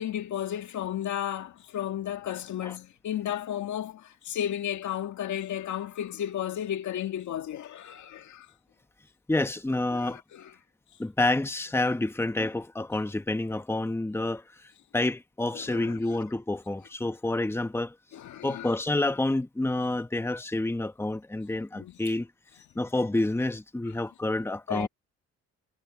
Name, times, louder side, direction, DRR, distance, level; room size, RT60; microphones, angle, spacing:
voice 1, 0.0-8.5 9.9-10.5 15.5-16.2 18.1-18.7 21.8-22.0 24.7-24.9, left 10 dB, 70° left, 2.3 m, -33 dB
voice 2, 9.3-10.2 11.0-14.4 14.9-17.9 18.4-22.3 22.7-24.9, left 2 dB, 10° left, 1.3 m, -28 dB
cardioid pair, 90°, 30 cm